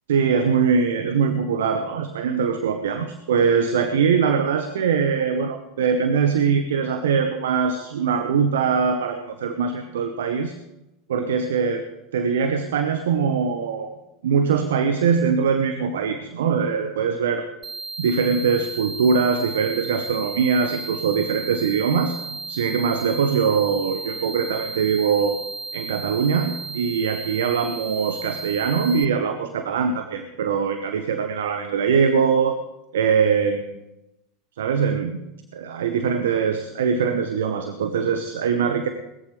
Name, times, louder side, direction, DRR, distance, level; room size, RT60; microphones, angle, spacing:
voice 1, 0.1-10.5 11.1-11.8 12.1-13.9 14.2-17.4 18.0-22.2 22.5-25.4 25.7-32.6 32.9-33.7 34.6-35.2 35.5-38.9, right 6 dB, 70° right, 8 dB, 1.1 m, -22 dB
sound 1, 17.6-29.0, right 4 dB, 20° right, 0.9 m, -34 dB
20.0 x 14.5 x 3.3 m, 0.93 s
figure-of-eight pair, 85°, 0 cm